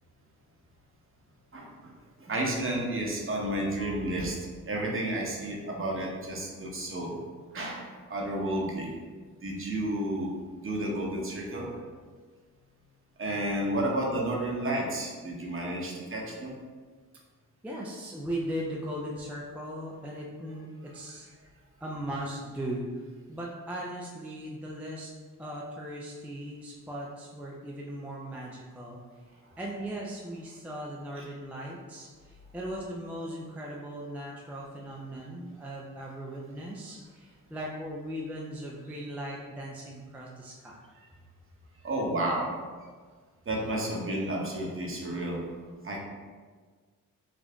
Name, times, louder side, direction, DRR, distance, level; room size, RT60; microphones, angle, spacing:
voice 1, 1.5-1.9 2.2-4.4 4.7-7.2 7.5-8.9 9.4-11.7 13.2-16.5 38.9-39.0 41.8-42.5 43.5-45.4 45.8-46.0, right 1 dB, 35° right, -2 dB, 0.9 m, -31 dB
voice 2, 17.6-21.3 21.8-23.0 23.3-25.1 25.4-29.0 29.3-40.8, equal, 5° right, -3 dB, 0.4 m, -38 dB
3.6 x 2.5 x 3.4 m, 1.5 s
cardioid pair, 65°, 35 cm